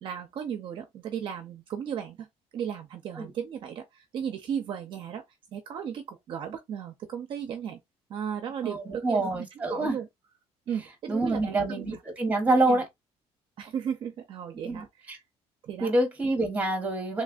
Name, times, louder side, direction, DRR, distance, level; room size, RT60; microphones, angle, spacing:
voice 1, 0.0-2.3 2.5-5.2 5.5-7.8 8.1-10.1 10.7-12.0 12.6-12.8 13.6-15.1 15.6-15.9, right 8 dB, 45° right, 0.5 m, -35 dB
voice 2, 8.6-10.0 11.1-12.8 14.6-15.2 15.8-17.2, right 2 dB, 15° right, 1.1 m, -26 dB
3.3 x 3.2 x 2.4 m
cardioid pair, 170°, 11 cm